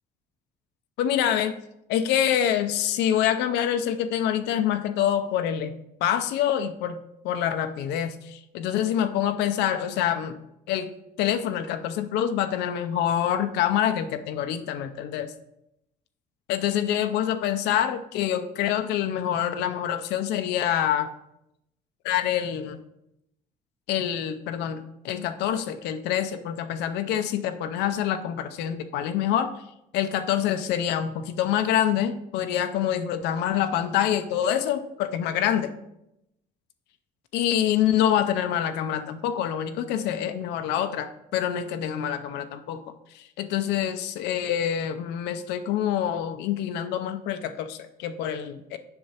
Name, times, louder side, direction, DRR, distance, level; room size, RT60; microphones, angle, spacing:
voice 1, 1.0-1.5 1.9-5.7 6.0-10.4 10.7-15.3 16.5-21.1 22.0-22.8 23.9-29.5 29.9-35.7 37.3-42.8 43.1-48.8, left 10 dB, 85° left, 8 dB, 0.5 m, -26 dB
7.7 x 5.6 x 2.8 m, 0.84 s
cardioid pair, 110°, 17 cm